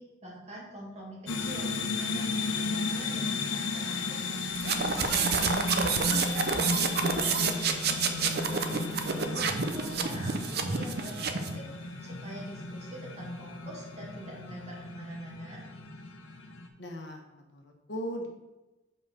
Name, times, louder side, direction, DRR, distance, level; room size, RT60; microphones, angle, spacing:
voice 1, 0.0-15.7, right 1 dB, 35° right, -5 dB, 2.5 m, -45 dB
sound 1, 1.3-16.7, left 3 dB, 90° left, 0.9 m, -34 dB
sound 2, 4.5-11.6, right 5 dB, 55° right, 0.6 m, -29 dB
voice 2, 16.8-18.3, equal, 65° left, 2 dB, 1.2 m, -38 dB
5.3 x 4.9 x 6.4 m, 1.1 s
head